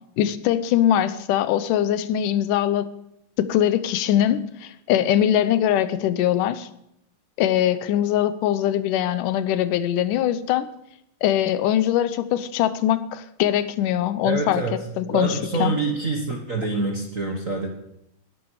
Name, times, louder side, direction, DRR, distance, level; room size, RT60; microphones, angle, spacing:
voice 1, 0.2-2.9 3.4-6.7 7.4-10.7 11.2-15.7, left 11 dB, 90° left, 13 dB, 2.4 m, -22 dB
voice 2, 14.2-14.8 15.1-17.7, right 3 dB, 40° right, 1 dB, 1.2 m, -26 dB
19.5 x 11.5 x 4.8 m, 0.78 s
omnidirectional pair, 3.6 m